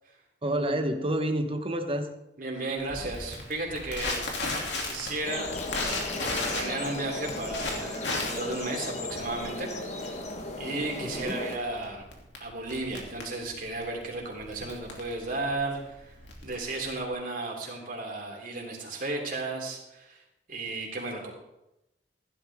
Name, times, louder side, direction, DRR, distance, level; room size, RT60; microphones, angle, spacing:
voice 1, 0.4-2.1 11.0-11.4, right 1 dB, 30° right, 6 dB, 1.2 m, -29 dB
voice 2, 2.4-4.2 4.8-5.5 6.1-10.2 10.5-12.0 12.4-16.1 16.4-20.2 20.5-21.3, right 2 dB, 50° right, -1 dB, 3.5 m, -34 dB
Crackle, 2.9-17.1, left 2 dB, 75° left, 2.9 m, -36 dB
sound 1, 5.2-11.6, left 2 dB, 40° left, 1.5 m, -36 dB
15.5 x 12.0 x 3.7 m, 0.92 s
head